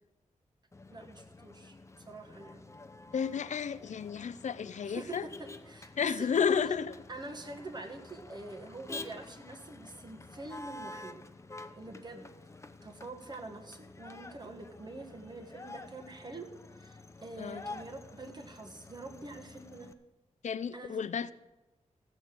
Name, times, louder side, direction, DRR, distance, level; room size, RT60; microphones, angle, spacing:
Motor vehicle (road), 0.7-19.9, left 3 dB, 25° left, 0.7 m, -49 dB
voice 1, 0.9-1.8 2.1-2.6 4.8-6.3 7.1-11.2 11.8-12.3 12.8-16.5 16.8-19.9 20.7-21.0, right 2 dB, 35° right, 1.6 m, -45 dB
voice 2, 3.1-5.3 6.0-7.0 17.4-17.6 20.4-21.3, left 6 dB, 75° left, 0.5 m, -32 dB
15.0 x 6.8 x 7.7 m
wide cardioid pair, 135°, 12 cm